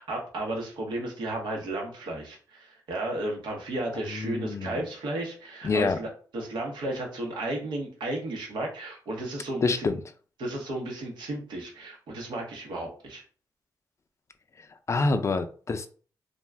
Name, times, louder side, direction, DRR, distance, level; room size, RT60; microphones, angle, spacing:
voice 1, 0.0-9.9 10.4-13.2, right 1 dB, 85° right, 1 dB, 0.8 m, -33 dB
voice 2, 4.1-4.8 5.6-6.0 9.6-10.0 14.9-15.9, left 3 dB, 40° left, 9 dB, 0.4 m, -26 dB
2.5 x 2.2 x 3.2 m, 0.41 s
cardioid pair, 65°, 8 cm